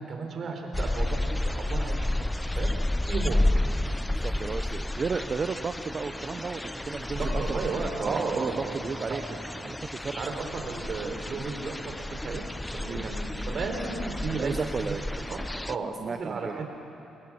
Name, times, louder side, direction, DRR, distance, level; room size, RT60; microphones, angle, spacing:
voice 1, 0.1-2.1 2.4-2.7 3.1-3.4 7.1-8.8 9.1-9.2 10.2-12.4 12.7-15.4 15.7-16.7, right 4 dB, 55° right, 3 dB, 3.7 m, -34 dB
sound 1, 0.7-15.8, left 1 dB, 10° left, 0.5 m, -31 dB
voice 2, 4.0-7.6 8.0-9.2 9.5-10.2 12.8-13.1 14.4-15.0 15.3-15.4 15.8-16.6, right 5 dB, 35° right, 9 dB, 0.7 m, -34 dB
26.0 x 21.0 x 6.1 m, 2.8 s
cardioid pair, 90°, 0 cm